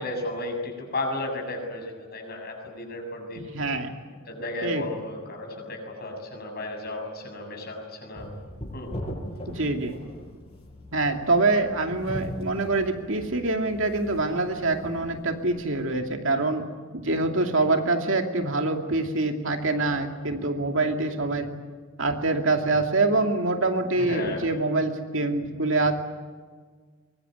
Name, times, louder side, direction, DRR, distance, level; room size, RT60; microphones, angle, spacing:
voice 1, 0.0-3.5 4.3-8.3 8.7-8.9 24.0-24.4, left 2 dB, 45° left, 3 dB, 7.1 m, -34 dB
voice 2, 3.4-3.9 4.6-4.8 9.5-10.0 10.9-16.6 16.9-21.5 22.0-25.9, right 2 dB, 65° right, 4 dB, 2.7 m, -25 dB
sound 1, 8.1-16.0, equal, 30° left, 7.8 m, -40 dB
23.5 x 22.0 x 9.4 m, 1.5 s
head